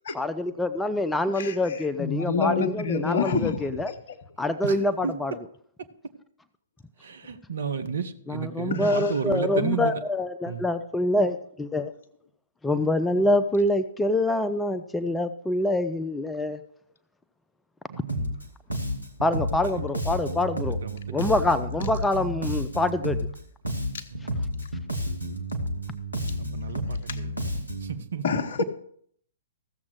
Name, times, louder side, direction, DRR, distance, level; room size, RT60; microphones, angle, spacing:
voice 1, 0.1-3.9 4.4-5.4 8.3-11.9 12.6-16.6 19.2-20.8 21.1-23.2, left 2 dB, 5° left, 11 dB, 0.5 m, -25 dB
voice 2, 2.0-3.6 8.7-9.1 23.9-24.0 27.1-27.2 28.2-28.6, left 5 dB, 55° left, 10 dB, 1.0 m, -27 dB
voice 3, 7.3-8.0 8.3-10.0 10.5-10.7 13.1-13.2 17.9-18.3 19.6-19.7 20.8-21.4 24.1-24.6 26.4-28.2, right 6 dB, 60° right, 9 dB, 1.0 m, -32 dB
Bass guitar, 18.1-18.4 18.7-23.4 23.6-28.0, equal, 90° right, 1.4 m, -31 dB
15.0 x 7.2 x 4.8 m, 0.63 s
figure-of-eight pair, 115°, 0 cm